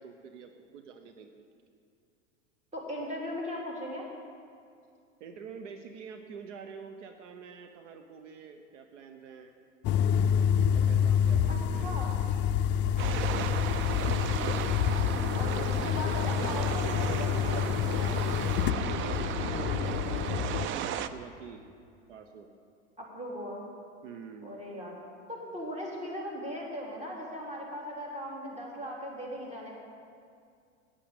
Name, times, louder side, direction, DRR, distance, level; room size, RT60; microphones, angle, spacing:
voice 1, 0.0-1.4 5.2-9.5 10.6-12.0 12.9-13.9 18.8-21.6 22.1-22.5 24.0-24.5, right 6 dB, 75° right, 6 dB, 1.0 m, -46 dB
voice 2, 2.7-4.1 11.5-12.1 15.3-18.2 23.0-23.6 24.4-24.9 25.3-29.8, equal, 20° right, -2 dB, 3.3 m, -38 dB
sound 1, 9.8-20.7, left 8 dB, 30° left, 0.5 m, -28 dB
sound 2, 13.0-21.1, right 9 dB, 35° right, 0.5 m, -35 dB
9.7 x 8.6 x 8.3 m, 2.4 s
hypercardioid pair, 105°, 37 cm